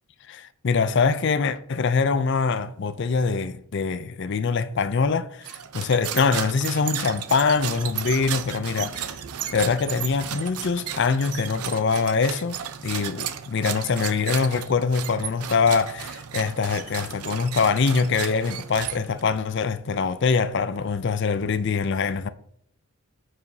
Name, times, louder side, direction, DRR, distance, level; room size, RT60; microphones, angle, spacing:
voice 1, 0.3-9.2 9.5-22.3, left 5 dB, 50° left, 0.4 m, -24 dB
sound 1, 5.4-19.4, right 9 dB, 90° right, 0.6 m, -34 dB
14.5 x 4.9 x 2.7 m
head